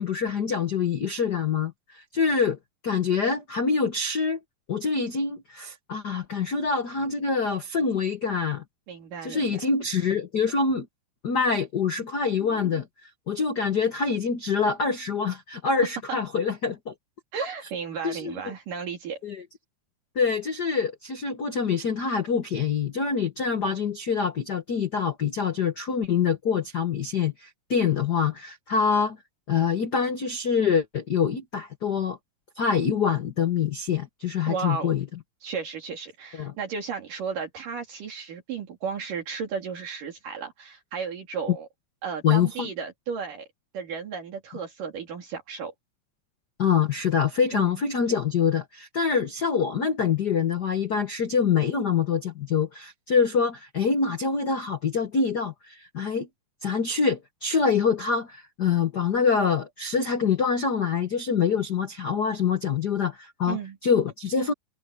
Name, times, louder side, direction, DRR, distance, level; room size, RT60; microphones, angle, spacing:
voice 1, 0.0-2.6 2.8-4.4 4.7-8.6 9.2-10.9 11.2-12.9 13.3-16.9 18.0-18.5 19.2-19.4 20.1-29.2 29.5-32.2 32.6-35.0 36.3-36.5 42.2-42.7 46.6-56.3 56.6-64.5, left 6 dB, 75° left, 0.9 m, -25 dB
voice 2, 8.9-9.5 16.1-16.2 17.3-19.2 34.5-35.0 35.4-41.7 42.0-43.5 43.7-45.7 47.5-47.8 63.5-63.8, right 6 dB, 65° right, 4.3 m, -34 dB
omnidirectional pair, 4.1 m